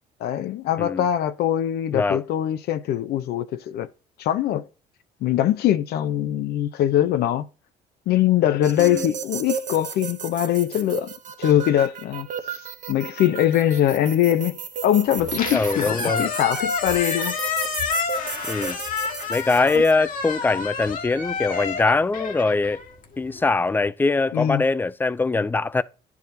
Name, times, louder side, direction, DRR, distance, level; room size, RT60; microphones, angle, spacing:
voice 1, 0.2-3.9 4.2-4.6 5.2-7.4 8.1-11.1 11.4-12.3 12.5-12.6 12.9-17.4 19.7-19.8 24.3-24.6, left 11 dB, 70° left, 0.6 m, -22 dB
voice 2, 1.9-2.2 8.8-9.1 15.5-16.3 18.5-18.8 19.3-22.8 23.2-25.8, left 3 dB, 10° left, 0.3 m, -22 dB
sound 1, 8.6-19.9, right 7 dB, 50° right, 0.7 m, -34 dB
Squeak, 15.2-23.4, left 5 dB, 50° left, 1.5 m, -29 dB
10.5 x 4.7 x 2.7 m
cardioid pair, 110°, 17 cm